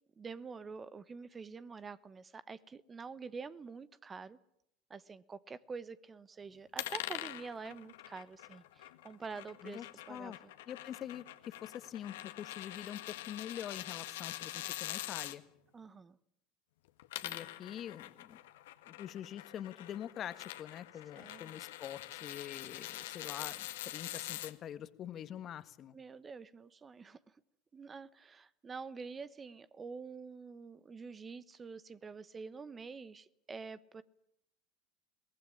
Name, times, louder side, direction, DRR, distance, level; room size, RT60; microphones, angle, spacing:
voice 1, 0.2-4.4 4.9-9.8 10.1-10.5 15.7-16.2 21.1-21.5 25.9-27.4 27.7-34.0, right 5 dB, 25° right, 16 dB, 1.1 m, -47 dB
sound 1, 6.8-15.4 16.9-24.5, left 15 dB, 70° left, 1.6 m, -44 dB
voice 2, 9.6-10.4 10.7-15.4 17.2-18.4 18.9-26.0, left 10 dB, 40° left, 12 dB, 1.7 m, -45 dB
23.0 x 19.0 x 9.9 m, 0.76 s
hypercardioid pair, 80°, 0 cm